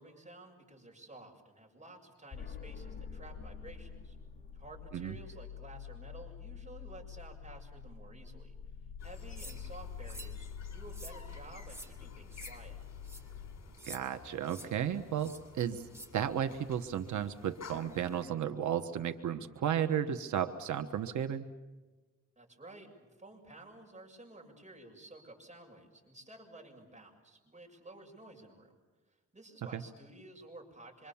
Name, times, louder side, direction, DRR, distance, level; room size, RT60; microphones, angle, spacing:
voice 1, 0.0-4.2 4.5-8.5 9.0-10.5 10.7-12.8 22.4-28.7 29.1-31.1, right 2 dB, 25° right, 1 dB, 6.9 m, -53 dB
sound 1, 2.3-13.6, left 7 dB, 35° left, 2.3 m, -46 dB
sound 2, 9.0-18.3, left 5 dB, 65° left, 3.3 m, -55 dB
sound 3, 9.4-9.6 10.1-10.3 10.9-11.2 11.7-11.9 12.3-12.5 13.0-13.2 13.8-14.0 14.5-14.7 15.2-15.4 15.9-16.1, right 1 dB, 10° right, 3.8 m, -48 dB
voice 2, 13.8-21.5 29.7-29.8, right 9 dB, 85° right, 7 dB, 1.2 m, -34 dB
26.5 x 24.5 x 7.2 m, 1.2 s
cardioid pair, 95°, 29 cm